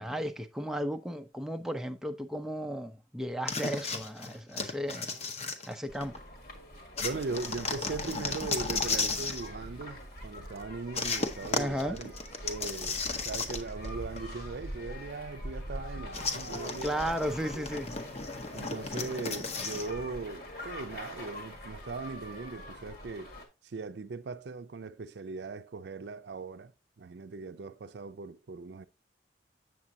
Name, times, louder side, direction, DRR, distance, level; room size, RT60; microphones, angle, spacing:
voice 1, 0.0-5.1 5.7-6.1 11.6-12.0 16.8-17.9, equal, 5° right, 0.5 m, -34 dB
sound 1, 3.5-6.2 7.0-9.5 10.9-13.9 14.2-14.3 16.1-19.9, left 4 dB, 35° left, 0.8 m, -34 dB
sound 2, 5.9-23.5, equal, 60° left, 1.8 m, -44 dB
voice 2, 7.0-12.1 12.4-17.6 18.5-23.3 23.6-26.7 27.0-28.9, right 4 dB, 75° right, 0.5 m, -39 dB
7.4 x 7.3 x 2.7 m
head